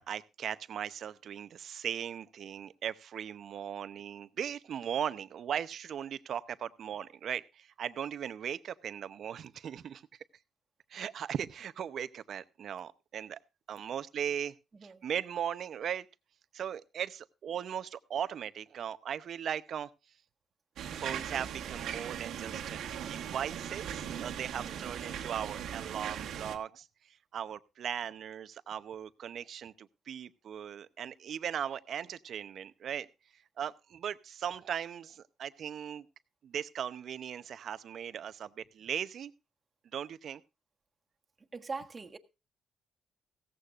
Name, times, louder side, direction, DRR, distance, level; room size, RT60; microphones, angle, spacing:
voice 1, 0.0-10.0 10.9-13.4 13.7-14.5 14.8-16.0 16.5-19.9 20.9-22.8 23.1-26.9 27.3-33.1 33.6-36.1 36.4-39.3 39.9-40.4, right 9 dB, 65° right, 0.7 m, -38 dB
sound 1, 20.8-26.6, right 9 dB, 80° right, 1.4 m, -39 dB
voice 2, 24.6-24.9 41.5-42.2, right 4 dB, 30° right, 1.4 m, -42 dB
16.0 x 14.5 x 2.5 m
cardioid pair, 90°, 0 cm